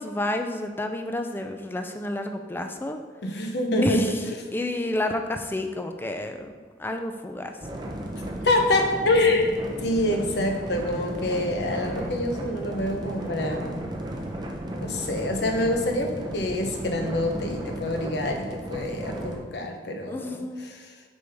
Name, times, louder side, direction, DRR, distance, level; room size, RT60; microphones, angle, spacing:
voice 1, 0.0-3.0 3.8-4.1 4.5-6.5 6.8-7.5 20.1-20.6, left 1 dB, 10° left, 6 dB, 0.3 m, -30 dB
voice 2, 3.2-4.5 8.4-13.9 14.8-20.9, left 1 dB, 60° left, 3 dB, 0.8 m, -26 dB
sound 1, 7.6-19.4, right 1 dB, 25° right, 0.7 m, -34 dB
6.6 x 5.4 x 3.4 m, 1.4 s
head